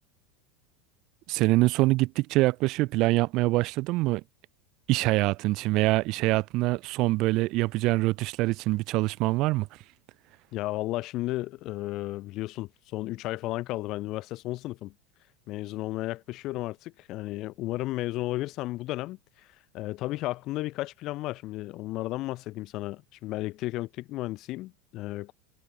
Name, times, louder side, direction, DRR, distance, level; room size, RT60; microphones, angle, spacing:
voice 1, 1.3-4.2 4.9-9.7, right 20 dB, 50° right, 0.5 m, -24 dB
voice 2, 10.5-14.9 15.5-19.5 19.7-25.3, left 17 dB, 45° left, 2.5 m, -33 dB
supercardioid pair, 140°, 0 cm